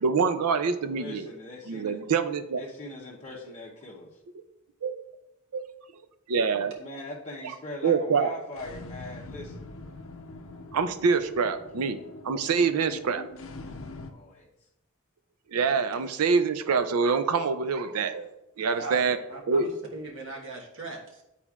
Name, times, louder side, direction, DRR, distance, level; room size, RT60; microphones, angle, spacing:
voice 1, 0.0-1.3 1.7-2.6 4.8-4.9 5.5-5.6 6.3-6.7 7.8-8.3 10.7-12.0 12.2-13.2 15.5-18.3 18.6-19.2 19.5-19.7, right 5 dB, 90° right, 11 dB, 0.5 m, -25 dB
voice 2, 0.9-2.0 2.6-4.2 6.8-9.7 13.9-14.7, left 2 dB, 30° left, -6 dB, 0.7 m, -41 dB
sound 1, 8.5-14.1, left 2 dB, 65° left, 0.6 m, -43 dB
voice 3, 18.6-21.2, right 2 dB, 60° right, -1 dB, 1.2 m, -40 dB
9.8 x 4.2 x 2.4 m, 0.88 s
head